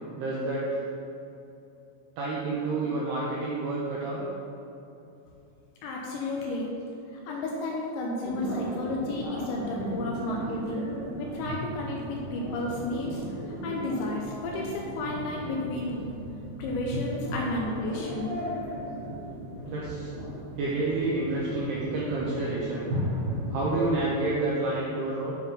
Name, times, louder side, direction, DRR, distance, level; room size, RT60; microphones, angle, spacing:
voice 1, 0.2-0.9 2.2-4.3 12.8-12.9 19.7-20.1 20.6-22.9 23.5-25.4, right 2 dB, 85° right, -5 dB, 2.3 m, -29 dB
voice 2, 5.8-6.7 7.1-10.9 11.2-15.9 16.6-18.4, left 2 dB, 80° left, -2 dB, 2.7 m, -32 dB
sound 1, 8.2-24.1, equal, 70° right, 1.8 m, -36 dB
9.8 x 3.7 x 5.4 m, 2.8 s
omnidirectional pair, 5.8 m